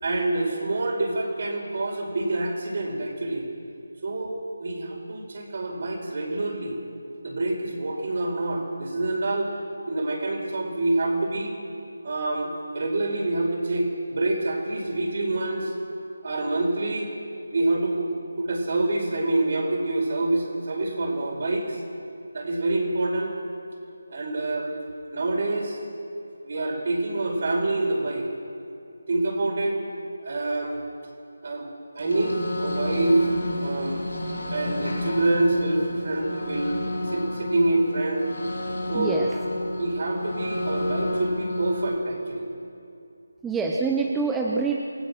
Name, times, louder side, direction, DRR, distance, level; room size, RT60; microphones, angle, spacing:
voice 1, 0.0-3.5 4.0-6.8 7.2-9.5 9.9-11.6 12.0-15.7 16.2-17.1 17.5-21.8 22.3-23.4 24.1-24.7 25.1-25.8 26.4-28.3 29.1-29.8 30.2-30.8 31.4-31.7 31.9-33.3 33.6-34.0 34.5-36.8 37.0-38.2 38.9-39.2 39.7-42.5, right 2 dB, 50° right, 1 dB, 5.1 m, -26 dB
sound 1, 32.0-41.9, left 1 dB, 85° left, 4.9 m, -30 dB
voice 2, 38.9-39.3 43.4-44.8, right 4 dB, 5° right, -1 dB, 1.0 m, -25 dB
27.5 x 18.5 x 6.3 m, 2.6 s
figure-of-eight pair, 160°, 0 cm